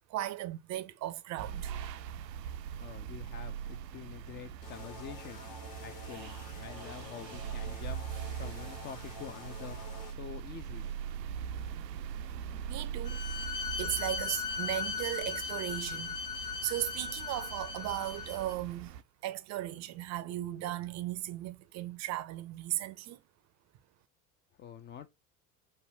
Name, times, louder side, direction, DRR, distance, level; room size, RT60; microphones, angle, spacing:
voice 1, 0.1-1.7 12.7-13.3 13.8-18.9 19.2-23.2, right 14 dB, 35° right, 0.5 m, -37 dB
sound 1, 1.4-19.0, right 8 dB, 80° right, 0.5 m, -41 dB
voice 2, 2.8-5.4 5.8-10.9 11.4-11.5 24.6-25.1, left 8 dB, 25° left, 0.4 m, -47 dB
sound 2, 4.6-10.1, left 4 dB, 45° left, 1.4 m, -49 dB
Bowed string instrument, 13.0-18.5, left 5 dB, 85° left, 0.7 m, -38 dB
5.3 x 2.1 x 3.3 m
figure-of-eight pair, 70°, 49 cm